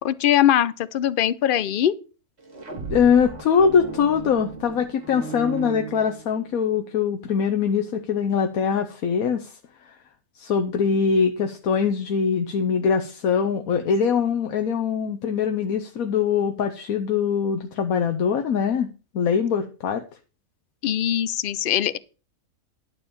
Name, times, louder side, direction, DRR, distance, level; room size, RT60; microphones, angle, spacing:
voice 1, 0.0-1.9 20.8-22.0, left 11 dB, 60° left, 0.6 m, -21 dB
sound 1, 2.4-6.6, right 5 dB, 50° right, 2.1 m, -36 dB
voice 2, 2.9-9.6 10.4-18.9 19.1-20.0, left 6 dB, 85° left, 1.3 m, -22 dB
11.5 x 4.8 x 7.0 m
omnidirectional pair, 1.5 m